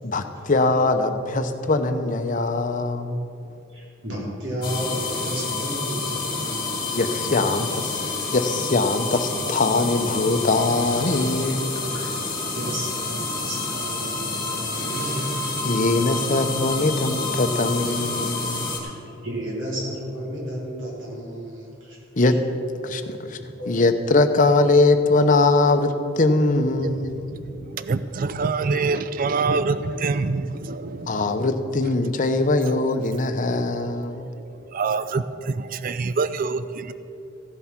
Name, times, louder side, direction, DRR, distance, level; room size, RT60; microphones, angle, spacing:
voice 1, 0.0-3.2 6.9-8.0 8.3-11.8 15.6-18.7 22.2-22.4 22.8-23.4 23.7-27.2 31.1-34.2, left 2 dB, 40° left, 7 dB, 0.8 m, -21 dB
voice 2, 3.7-6.8 11.7-12.1 12.5-15.4 18.8-22.3 23.6-23.8, right 1 dB, 70° right, -4 dB, 3.6 m, -33 dB
sound 1, 4.6-18.8, left 3 dB, 25° left, 2.4 m, -29 dB
voice 3, 26.8-31.5 34.1-34.2 34.5-36.9, right 4 dB, 45° right, 13 dB, 0.4 m, -26 dB
15.0 x 8.0 x 5.9 m, 2.7 s
head